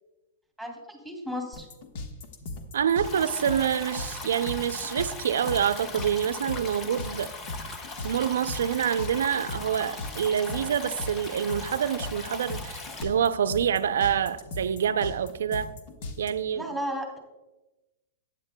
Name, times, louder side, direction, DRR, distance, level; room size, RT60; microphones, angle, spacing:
voice 1, 0.6-1.7 16.6-17.2, equal, 5° left, 2.7 m, -34 dB
sound 1, 1.5-16.3, left 2 dB, 55° left, 1.2 m, -38 dB
voice 2, 2.7-7.3 8.0-15.7 16.2-16.8, right 8 dB, 85° right, 0.5 m, -27 dB
Stream, 3.0-13.0, left 3 dB, 25° left, 1.1 m, -39 dB
14.5 x 9.6 x 2.2 m
hypercardioid pair, 140°, 0 cm